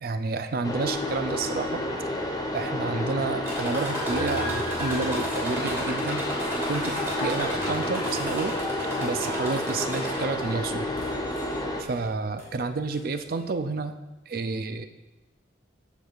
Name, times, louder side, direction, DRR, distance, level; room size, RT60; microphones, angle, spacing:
voice 1, 0.0-1.8 2.5-6.2 6.7-8.5 9.0-10.9 11.8-14.0 14.3-14.9, right 3 dB, 50° right, 9 dB, 0.4 m, -30 dB
sound 1, 0.6-11.8, left 1 dB, 20° left, 0.6 m, -30 dB
sound 2, 1.5-13.6, left 1 dB, 40° left, 0.9 m, -46 dB
sound 3, 3.4-10.5 11.0-11.6 12.4-12.5 12.9-13.0, equal, 15° right, 2.6 m, -34 dB
13.5 x 4.6 x 2.5 m, 1.1 s
head